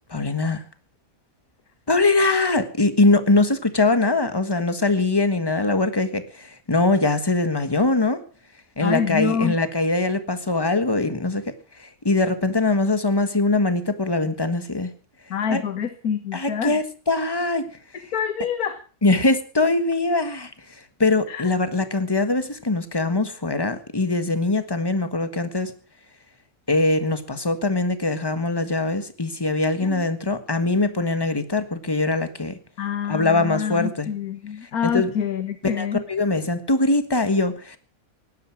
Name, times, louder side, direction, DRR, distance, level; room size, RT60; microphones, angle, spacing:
voice 1, 0.1-0.6 1.9-8.2 8.8-11.5 11.8-14.9 15.5-15.6 16.3-17.7 19.0-20.5 21.0-25.7 26.7-32.6 33.1-34.1 34.6-35.1 35.8-37.8, left 2 dB, 15° left, 10 dB, 1.4 m, -22 dB
voice 2, 8.8-9.5 15.3-16.8 18.1-18.8 21.3-21.4 29.8-30.1 32.8-36.0, left 7 dB, 80° left, 9 dB, 1.8 m, -26 dB
17.0 x 11.5 x 6.1 m, 0.39 s
omnidirectional pair, 1.5 m